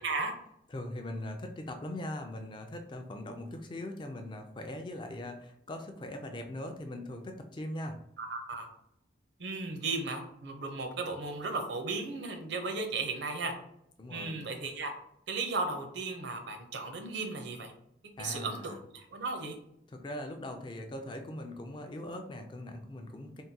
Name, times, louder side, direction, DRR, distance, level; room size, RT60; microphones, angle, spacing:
voice 1, 0.0-0.3 8.2-8.7 9.4-13.5 14.1-14.9 15.3-17.7 18.2-19.6, right 3 dB, 65° right, 4 dB, 0.6 m, -35 dB
voice 2, 0.7-8.0 14.0-14.4 18.2-18.8 19.9-23.4, left 1 dB, 25° left, 5 dB, 0.3 m, -40 dB
3.5 x 2.2 x 2.7 m, 0.74 s
head